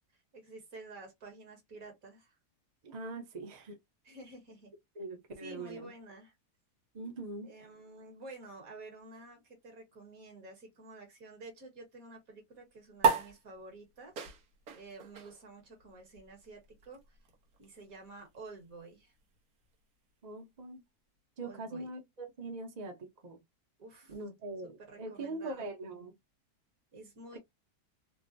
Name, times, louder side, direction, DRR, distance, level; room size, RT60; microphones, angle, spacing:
voice 1, 0.3-2.4 4.0-4.7 5.4-6.3 7.4-14.3 14.7-17.2 17.6-19.1 21.4-21.9 23.8-24.2 24.9-25.7 26.9-27.4, right 2 dB, 60° right, 1.8 m, -50 dB
voice 2, 2.8-3.8 5.0-5.9 6.9-7.5 20.2-20.8 21.4-23.4 24.1-26.1, right 2 dB, 35° right, 0.7 m, -42 dB
sound 1, 13.0-19.8, right 6 dB, 75° right, 1.5 m, -36 dB
3.7 x 2.1 x 2.5 m
omnidirectional pair, 1.7 m